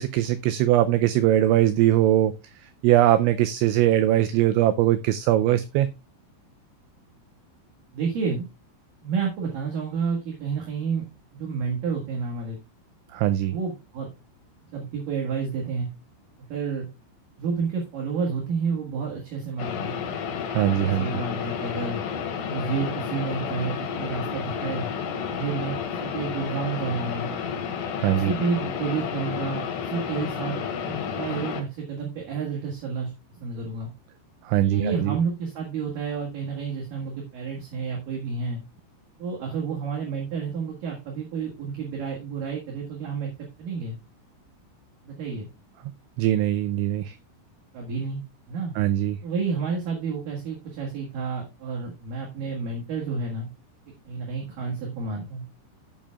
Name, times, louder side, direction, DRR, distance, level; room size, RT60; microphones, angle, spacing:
voice 1, 0.0-2.3 2.8-5.9 13.1-13.6 20.5-21.1 28.0-28.3 34.5-35.2 46.2-47.1 48.8-49.2, right 13 dB, 85° right, 11 dB, 2.6 m, -21 dB
voice 2, 7.9-8.5 9.0-11.0 11.3-12.6 13.5-14.1 14.7-15.9 16.5-16.9 17.4-19.9 20.8-22.0 22.5-24.9 25.3-27.3 28.1-30.5 30.8-33.1 33.4-33.9 34.6-38.6 39.2-43.3 43.6-44.0 45.0-45.5 47.7-48.2 48.5-48.7 49.2-53.5 54.1-55.4, right 5 dB, 60° right, -1 dB, 2.6 m, -30 dB
sound 1, 19.6-31.6, left 7 dB, 75° left, 4.2 m, -31 dB
16.0 x 7.0 x 2.3 m, 0.26 s
omnidirectional pair, 5.8 m